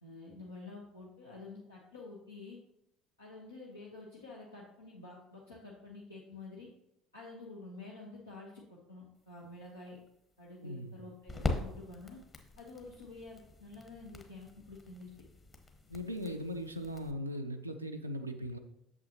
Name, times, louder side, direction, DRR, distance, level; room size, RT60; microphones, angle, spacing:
voice 1, 0.0-2.6 3.2-6.7 7.1-10.0 10.4-12.2 12.6-15.1, left 3 dB, 85° left, 1.0 m, -49 dB
sound 1, 9.2-17.1, left 2 dB, 30° left, 1.1 m, -42 dB
voice 2, 10.6-11.0 15.9-18.6, equal, 90° right, 0.4 m, -39 dB
8.5 x 6.8 x 2.8 m
figure-of-eight pair, 60°, 0 cm